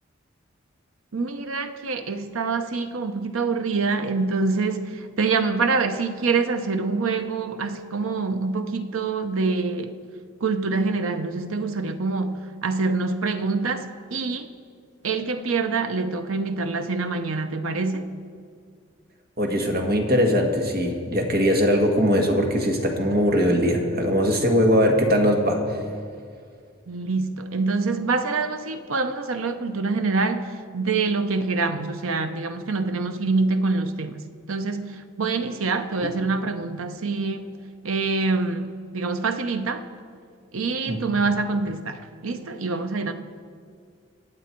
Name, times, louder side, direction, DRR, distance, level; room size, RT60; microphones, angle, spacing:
voice 1, 1.1-9.9 10.4-14.5 15.0-18.2 26.9-34.2 34.5-37.5 37.8-39.9 40.5-43.1, right 4 dB, 85° right, 8 dB, 0.8 m, -25 dB
voice 2, 19.4-25.8 36.0-36.1 40.9-41.0, equal, 45° right, 2 dB, 1.7 m, -21 dB
24.0 x 8.4 x 4.5 m, 2.1 s
head